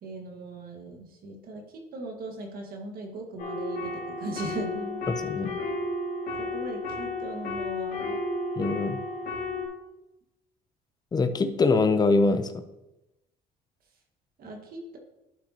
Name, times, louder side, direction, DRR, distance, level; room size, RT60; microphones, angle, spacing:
voice 1, 0.0-5.0 6.4-8.2 14.4-15.0, right 2 dB, 60° right, 2 dB, 1.7 m, -39 dB
sound 1, 3.4-9.7, left 2 dB, 70° left, 2.3 m, -33 dB
voice 2, 5.1-5.6 8.6-9.0 11.1-12.6, left 3 dB, 25° left, 9 dB, 0.6 m, -24 dB
11.5 x 5.4 x 2.9 m, 0.94 s
cardioid pair, 110°, 17 cm